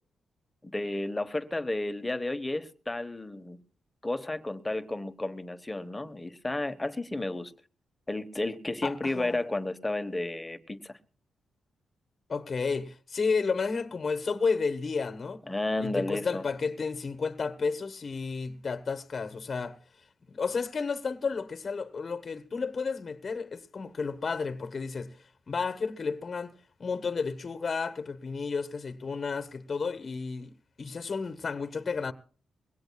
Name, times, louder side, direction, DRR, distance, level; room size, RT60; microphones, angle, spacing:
voice 1, 0.6-3.6 4.0-7.5 8.1-10.9 15.5-16.4, left 2 dB, 15° left, 1.2 m, -32 dB
voice 2, 8.8-9.4 12.3-15.4 15.8-19.8 20.3-25.2 25.5-26.5 26.8-30.5 30.8-32.1, left 5 dB, 45° left, 1.2 m, -32 dB
22.5 x 17.5 x 2.3 m
cardioid pair, 75°, 0 cm